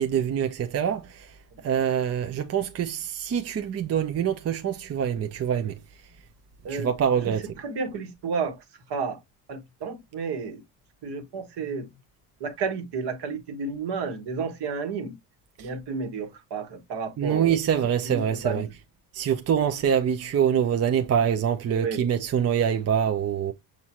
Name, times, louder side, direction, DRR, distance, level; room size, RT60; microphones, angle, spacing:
voice 1, 0.0-1.4 1.6-5.8 6.7-7.4 15.6-15.7 17.2-18.7 19.1-23.5, right 8 dB, 35° right, 0.6 m, -25 dB
voice 2, 7.2-8.6 8.9-9.2 9.5-10.6 11.0-11.9 12.4-15.2 15.6-17.6 18.0-18.7 21.7-22.0, right 5 dB, 55° right, 1.5 m, -31 dB
6.2 x 2.7 x 2.9 m
supercardioid pair, 75°, 47 cm